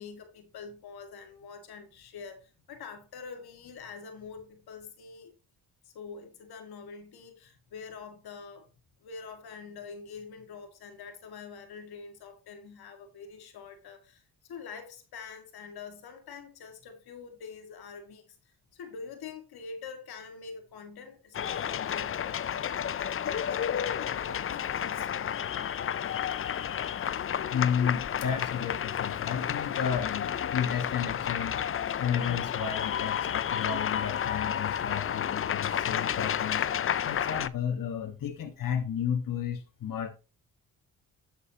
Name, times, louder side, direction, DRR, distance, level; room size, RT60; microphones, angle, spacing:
voice 1, 0.0-5.3 5.8-8.7 9.0-23.8 24.1-25.1, left 5 dB, 85° left, 1.8 m, -45 dB
sound 1, 21.3-37.5, left 9 dB, 35° left, 0.5 m, -31 dB
voice 2, 27.5-36.7 37.0-40.1, left 8 dB, 60° left, 1.6 m, -32 dB
11.5 x 6.8 x 2.8 m
cardioid pair, 85°, 37 cm